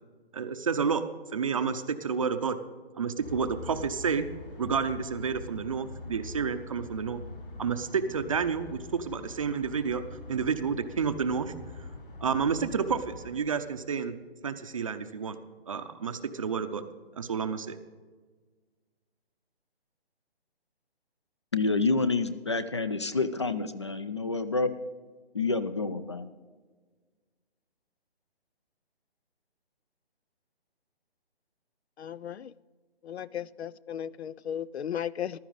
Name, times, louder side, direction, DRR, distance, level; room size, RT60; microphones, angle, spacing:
voice 1, 0.3-1.0 1.3-2.6 3.0-4.3 4.6-7.2 7.6-10.0 10.3-11.5 12.2-14.2 14.4-15.4 15.7-16.8 17.2-17.8, right 6 dB, 35° right, 9 dB, 0.6 m, -30 dB
sound 1, 3.2-13.3, left 3 dB, 55° left, 3.9 m, -44 dB
voice 2, 21.5-24.7 25.3-26.3, left 3 dB, 30° left, 13 dB, 0.4 m, -28 dB
voice 3, 32.0-32.5 33.0-35.4, left 9 dB, 80° left, 21 dB, 0.5 m, -35 dB
15.0 x 12.0 x 4.0 m, 1.4 s
hypercardioid pair, 160°, 32 cm